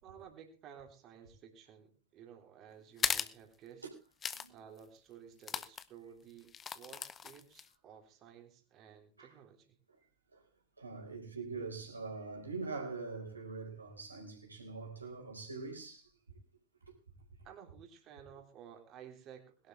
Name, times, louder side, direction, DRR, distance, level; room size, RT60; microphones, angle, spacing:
voice 1, 0.0-3.8 4.5-9.8 17.4-19.7, right 8 dB, 35° right, 3.4 m, -55 dB
sound 1, 3.0-3.3 4.2-4.5 4.8-4.9 5.4-5.8 6.5-7.7, left 7 dB, 20° left, 0.8 m, -36 dB
voice 2, 10.8-16.1, right 4 dB, 80° right, 4.4 m, -43 dB
21.0 x 12.0 x 3.3 m
figure-of-eight pair, 90°, 0 cm